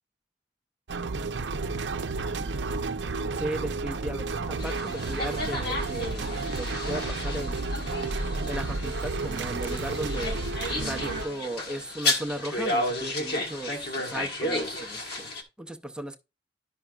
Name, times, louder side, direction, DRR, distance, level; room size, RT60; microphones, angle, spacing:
sound 1, 0.9-11.2, right 3 dB, 75° right, 0.6 m, -31 dB
voice 1, 3.3-7.7 8.4-10.4 10.7-15.3 15.6-16.2, right 1 dB, 5° right, 0.5 m, -36 dB
sound 2, 4.6-15.4, left 2 dB, 60° left, 1.3 m, -33 dB
11.0 x 5.6 x 2.3 m
head